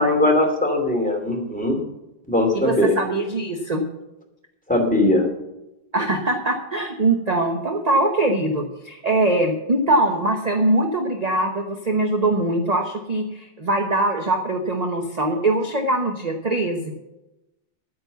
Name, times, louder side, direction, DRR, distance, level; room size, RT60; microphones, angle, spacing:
voice 1, 0.0-1.8 2.3-3.0 4.7-5.3, left 1 dB, 5° left, 2 dB, 2.5 m, -20 dB
voice 2, 2.5-3.8 5.9-17.0, right 2 dB, 30° right, 3 dB, 0.8 m, -22 dB
11.0 x 9.3 x 6.9 m, 0.94 s
omnidirectional pair, 2.1 m